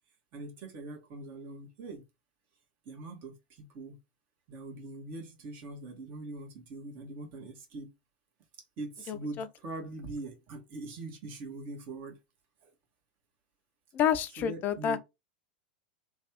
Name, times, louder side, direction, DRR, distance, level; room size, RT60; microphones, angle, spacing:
voice 1, 0.3-2.0 2.8-4.0 4.5-7.9 8.8-12.2 12.6-12.7 14.4-15.0, right 2 dB, 45° right, 1.3 m, -42 dB
voice 2, 9.1-9.5 13.9-15.0, left 8 dB, 35° left, 0.5 m, -29 dB
3.1 x 2.3 x 3.0 m
figure-of-eight pair, 90°, 5 cm